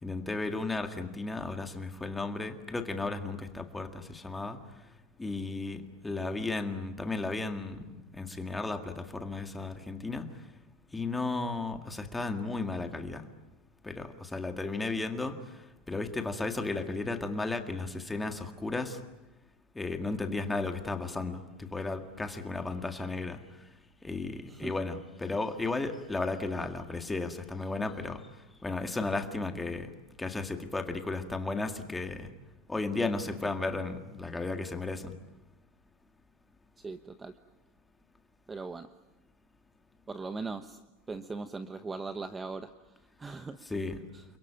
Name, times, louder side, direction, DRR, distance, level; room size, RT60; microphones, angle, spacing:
voice 1, 0.0-4.6 5.2-7.9 8.1-10.3 10.9-13.3 13.8-15.4 15.9-19.0 19.8-23.4 24.0-28.2 28.6-29.9 30.2-32.3 32.7-35.1 43.7-44.0, left 3 dB, 5° left, 6 dB, 1.9 m, -34 dB
voice 2, 36.8-37.4 38.5-38.9 40.1-40.8 41.1-43.6 44.1-44.2, right 4 dB, 10° right, 10 dB, 0.9 m, -40 dB
29.5 x 22.5 x 8.9 m, 1.0 s
supercardioid pair, 165°, 0 cm